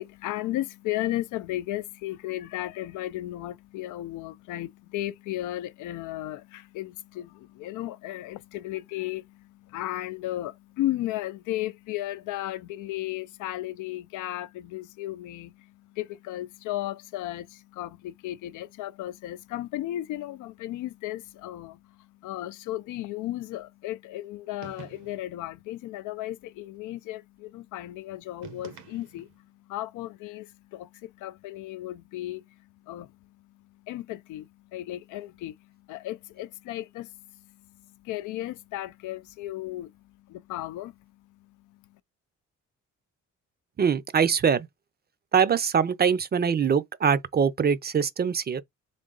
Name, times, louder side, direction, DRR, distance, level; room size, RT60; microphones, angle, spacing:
voice 1, 0.0-41.0 41.3-41.8, left 15 dB, 90° left, 0.5 m, -35 dB
sound 1, 24.6-25.4 28.4-29.4, right 7 dB, 80° right, 1.3 m, -46 dB
voice 2, 43.8-44.7 45.3-48.6, right 7 dB, 35° right, 0.5 m, -23 dB
3.8 x 3.5 x 3.9 m
cardioid pair, 90°, 30 cm